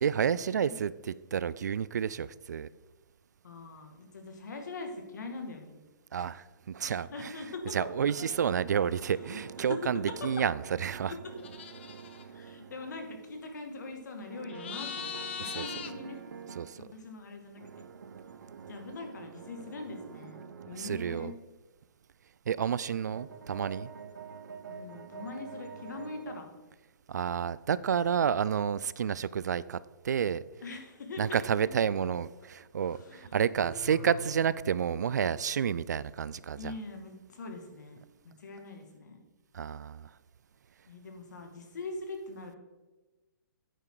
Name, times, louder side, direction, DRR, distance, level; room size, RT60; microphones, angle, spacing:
voice 1, 0.0-0.9 1.3-2.7 6.1-7.1 7.7-10.5 10.8-11.1 15.6-15.7 16.6-16.9 20.8-21.3 22.5-23.9 27.1-30.4 31.2-36.7 39.5-40.1, right 7 dB, 55° right, 18 dB, 0.4 m, -30 dB
voice 2, 3.4-5.8 6.2-6.3 6.9-7.7 8.3-8.4 8.7-9.8 10.2-10.3 11.1-11.2 11.8-11.9 12.2-16.2 16.8-17.7 18.7-21.4 24.7-26.5 30.6-31.7 32.8-33.4 33.9-34.4 36.5-39.2 40.9-42.6, left 3 dB, 55° left, 4 dB, 2.3 m, -43 dB
sound 1, 7.3-13.4 14.3-16.8 17.6-21.4 22.7-26.4, right 6 dB, 70° right, 0.9 m, -47 dB
sound 2, 11.4-12.2 14.5-15.9, left 8 dB, 35° left, 0.7 m, -40 dB
sound 3, 33.6-35.0, right 1 dB, 10° right, 0.7 m, -45 dB
11.0 x 9.1 x 3.9 m, 1.2 s
hypercardioid pair, 175°, 11 cm